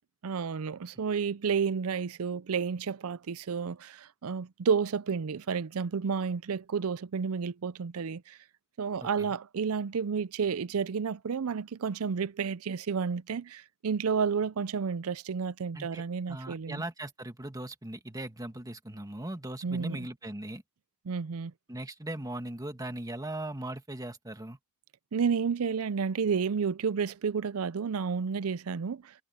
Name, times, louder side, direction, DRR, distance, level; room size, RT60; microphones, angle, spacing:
voice 1, 0.2-8.4 8.8-16.8 19.6-20.1 21.1-21.5 25.1-29.1, right 6 dB, 85° right, 0.5 m, -31 dB
voice 2, 9.0-9.3 15.7-20.6 21.7-24.6, right 1 dB, 15° right, 1.8 m, -39 dB
head